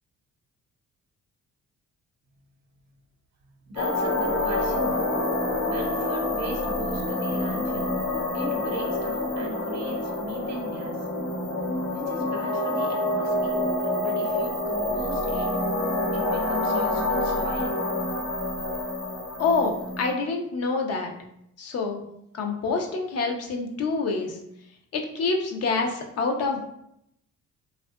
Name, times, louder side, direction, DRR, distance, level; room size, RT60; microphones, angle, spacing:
voice 1, 3.6-8.0 8.3-11.1 11.9-15.5 16.1-17.9, right 1 dB, 65° right, 2 dB, 0.7 m, -39 dB
sound 1, 3.8-20.1, left 1 dB, 75° left, 0.9 m, -27 dB
voice 2, 19.4-21.1 21.6-22.0 22.3-24.4 24.9-26.6, left 4 dB, 55° left, 2 dB, 0.5 m, -26 dB
2.6 x 2.3 x 2.2 m, 0.77 s
cardioid pair, 90°, 30 cm